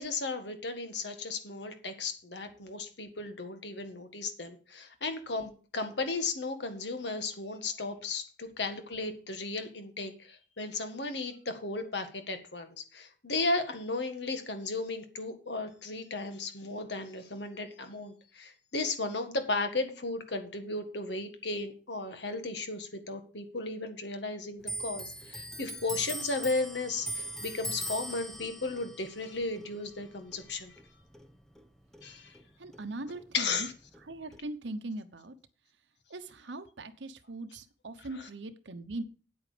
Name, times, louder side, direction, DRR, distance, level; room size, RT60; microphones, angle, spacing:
voice 1, 0.0-30.8 32.0-32.4 33.3-33.7 38.1-38.3, left 3 dB, 70° left, 7 dB, 1.8 m, -35 dB
Clock, 24.6-31.7 31.9-33.3 33.5-34.4, equal, ahead, 1.0 m, -41 dB
voice 2, 32.6-33.7 34.0-35.4 36.1-39.0, right 2 dB, 85° right, 8 dB, 1.0 m, -40 dB
8.8 x 8.7 x 5.1 m, 0.37 s
head